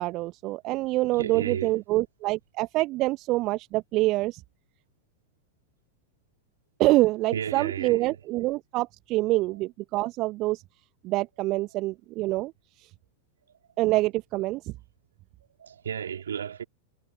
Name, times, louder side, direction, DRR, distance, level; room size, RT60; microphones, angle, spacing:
voice 1, 0.0-4.4 6.8-10.6 11.0-12.5 13.8-14.7, right 19 dB, 40° right, 1.3 m, -26 dB
voice 2, 1.2-1.7 7.3-8.1 15.6-16.6, right 8 dB, 65° right, 3.8 m, -33 dB
figure-of-eight pair, 90°, 0 cm